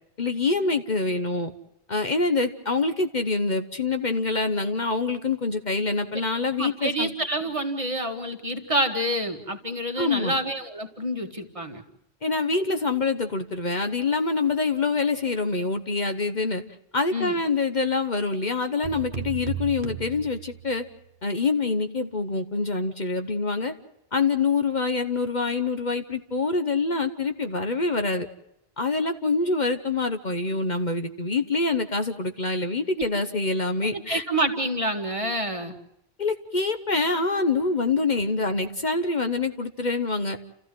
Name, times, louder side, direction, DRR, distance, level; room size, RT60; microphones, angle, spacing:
voice 1, 0.2-1.5 1.9-7.1 10.0-10.4 12.2-16.6 16.9-20.8 21.2-23.7 24.1-28.3 28.8-34.2 36.2-40.4, left 3 dB, 45° left, 7 dB, 1.1 m, -25 dB
voice 2, 6.6-11.8 17.1-17.4 33.9-35.7, right 1 dB, 30° right, 4 dB, 1.9 m, -28 dB
sound 1, 18.8-21.1, right 10 dB, 55° right, 1.4 m, -35 dB
29.5 x 14.5 x 7.7 m, 0.83 s
omnidirectional pair, 1.1 m